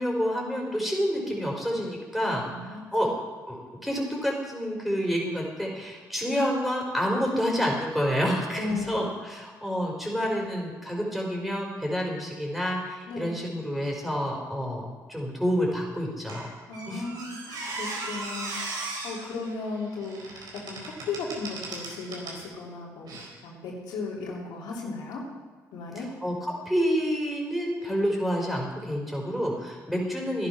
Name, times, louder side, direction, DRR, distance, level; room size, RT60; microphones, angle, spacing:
voice 1, 0.0-3.1 3.5-16.5 16.9-17.1 25.9-30.5, equal, ahead, -1 dB, 4.8 m, -28 dB
voice 2, 2.4-2.8 8.5-9.0 13.1-13.4 16.7-18.6 19.0-20.4 20.7-25.2 25.7-26.1, left 3 dB, 90° left, -3 dB, 3.0 m, -35 dB
Squeak, 16.3-22.4 23.1-23.3, right 2 dB, 75° right, 4.3 m, -37 dB
13.5 x 10.5 x 5.9 m, 1.5 s
cardioid pair, 70°, 7 cm